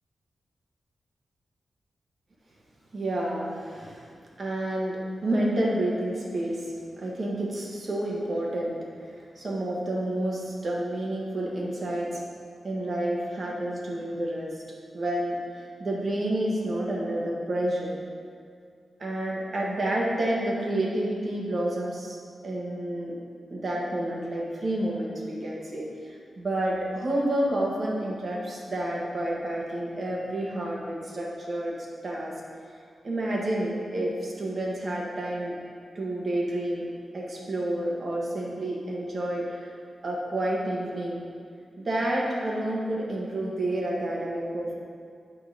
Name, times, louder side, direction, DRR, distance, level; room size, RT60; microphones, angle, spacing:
voice 1, 2.9-4.1 4.4-8.8 9.0-12.1 12.6-14.6 14.9-18.0 19.0-22.2 22.4-23.2 23.5-31.7 32.0-32.3 33.0-35.5 35.9-36.9 37.1-39.7 40.0-41.2 41.8-44.7, right 1 dB, 40° right, -3 dB, 1.3 m, -29 dB
8.9 x 3.8 x 6.5 m, 2.2 s
wide cardioid pair, 175°, 0 cm